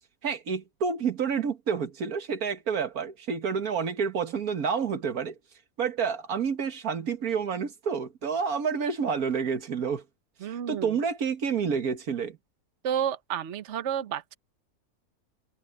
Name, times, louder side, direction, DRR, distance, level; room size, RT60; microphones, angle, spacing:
voice 1, 0.2-5.3 5.8-10.0 10.4-12.4, right 6 dB, 90° right, 2.0 m, -29 dB
voice 2, 10.4-11.0 12.8-14.3, right 9 dB, 55° right, 1.2 m, -31 dB
omnidirectional pair, 1.5 m